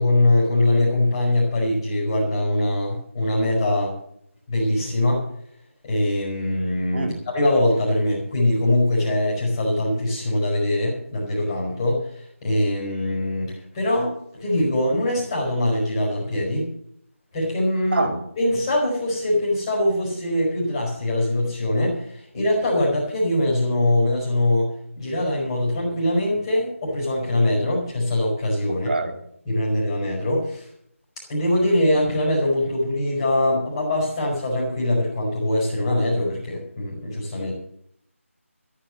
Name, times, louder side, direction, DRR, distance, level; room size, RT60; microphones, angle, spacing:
voice 1, 0.0-4.0 4.5-5.2 5.8-16.7 17.3-28.9 29.4-30.7 31.2-37.5, left 1 dB, 15° left, -4 dB, 4.5 m, -22 dB
voice 2, 6.9-7.2 17.9-18.1 28.9-29.1, right 3 dB, 50° right, 5 dB, 2.3 m, -24 dB
13.5 x 9.9 x 7.5 m, 0.69 s
figure-of-eight pair, 170°, 8 cm